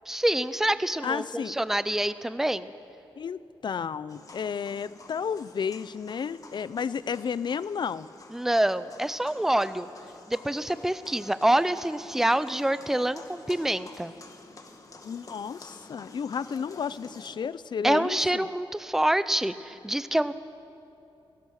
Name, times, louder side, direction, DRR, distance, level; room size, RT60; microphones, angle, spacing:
voice 1, 0.1-2.7 8.3-9.9 10.3-14.1 17.8-20.3, right 1 dB, 5° right, 13 dB, 0.6 m, -26 dB
voice 2, 1.0-1.6 3.2-8.1 15.0-18.5, left 6 dB, 55° left, 16 dB, 0.6 m, -32 dB
sound 1, 4.1-17.4, left 3 dB, 40° left, 1.8 m, -49 dB
28.0 x 17.5 x 6.5 m, 2.8 s
wide cardioid pair, 140°, 9 cm